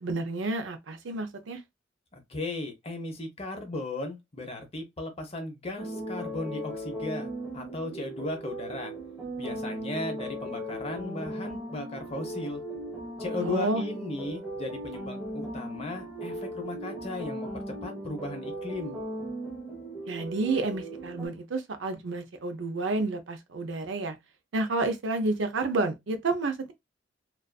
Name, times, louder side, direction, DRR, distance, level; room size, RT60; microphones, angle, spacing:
voice 1, 0.0-1.6 13.4-13.8 20.1-24.2 24.5-26.7, right 2 dB, 70° right, 0.5 m, -30 dB
voice 2, 2.1-7.3 7.5-8.9 9.4-12.6 13.2-19.0, left 2 dB, 30° left, 0.7 m, -36 dB
sound 1, 5.8-21.3, right 1 dB, ahead, 0.7 m, -37 dB
2.4 x 2.4 x 2.2 m
head